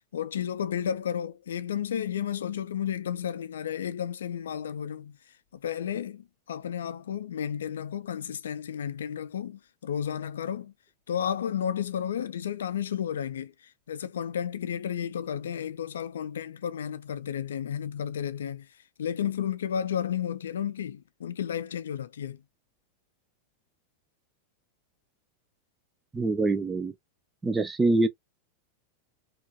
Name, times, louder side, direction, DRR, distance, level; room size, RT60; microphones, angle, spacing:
voice 1, 0.1-5.2 5.6-10.7 11.1-13.5 13.9-18.7 19.0-22.4, left 9 dB, 65° left, 0.4 m, -32 dB
voice 2, 26.1-26.9 27.4-28.1, right 2 dB, 15° right, 0.4 m, -24 dB
2.9 x 2.4 x 2.6 m
figure-of-eight pair, 90°, 0 cm